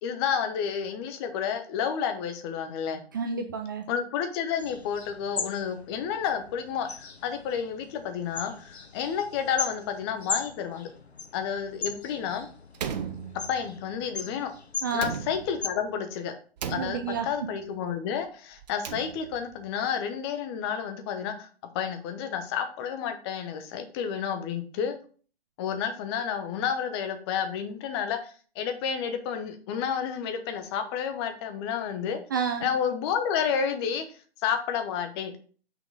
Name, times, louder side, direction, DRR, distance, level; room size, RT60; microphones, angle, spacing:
voice 1, 0.0-3.0 3.9-10.9 11.3-12.5 13.5-14.5 14.9-16.3 16.7-21.5 21.7-24.9 25.6-32.2 32.6-34.0 34.4-35.4, left 7 dB, 25° left, 7 dB, 0.9 m, -30 dB
voice 2, 3.1-3.9 14.8-15.1 16.8-17.3 32.3-32.7, right 6 dB, 20° right, 4 dB, 0.4 m, -30 dB
sound 1, 4.6-15.7, left 4 dB, 90° left, 1.0 m, -39 dB
Slam, 12.7-13.9 14.9-15.8 16.6-17.5 18.6-19.6, right 8 dB, 40° right, 0.8 m, -37 dB
6.0 x 5.6 x 3.9 m, 0.41 s
figure-of-eight pair, 130°, 31 cm